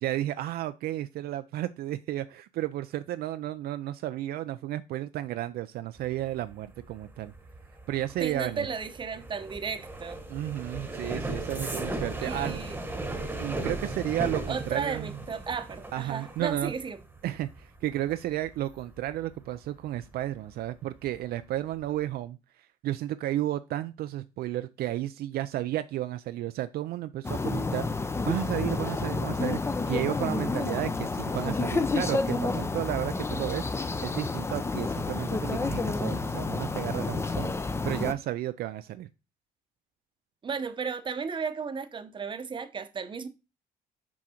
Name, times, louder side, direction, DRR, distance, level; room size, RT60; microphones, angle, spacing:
voice 1, 0.0-7.3 7.9-8.7 10.3-12.6 13.4-15.2 15.9-16.7 17.2-37.5 37.8-39.1, right 14 dB, 65° right, 0.4 m, -33 dB
sound 1, 6.0-20.6 20.9-21.4 21.7-22.0, right 2 dB, 10° right, 1.1 m, -38 dB
voice 2, 8.2-10.2 12.2-12.8 14.5-17.0 40.4-43.3, right 5 dB, 30° right, 0.8 m, -34 dB
sound 2, 27.2-38.1, left 3 dB, 15° left, 0.5 m, -30 dB
6.2 x 4.7 x 4.3 m
cardioid pair, 110°, 17 cm